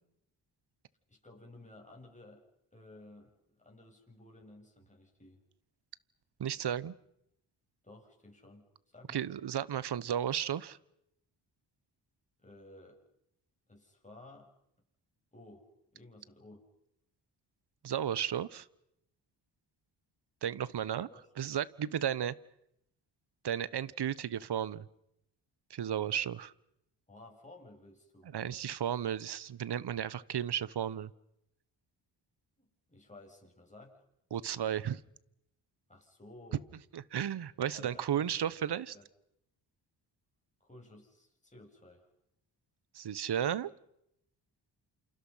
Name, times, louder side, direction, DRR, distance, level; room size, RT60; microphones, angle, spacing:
voice 1, 1.1-2.4 2.7-5.4 7.8-9.3 12.4-13.0 13.7-14.5 15.3-16.7 21.1-21.2 27.1-28.3 32.6-34.0 35.9-36.7 37.7-38.4 38.9-39.1 40.6-42.1, left 2 dB, 15° left, 0 dB, 7.7 m, -55 dB
voice 2, 6.4-6.9 9.1-10.8 17.8-18.7 20.4-21.1 21.4-22.3 23.4-24.9 25.7-26.5 28.3-31.1 34.3-35.0 36.9-39.0 42.9-43.7, right 9 dB, 60° right, 20 dB, 1.2 m, -34 dB
28.5 x 27.0 x 5.7 m, 0.80 s
supercardioid pair, 55°, 46 cm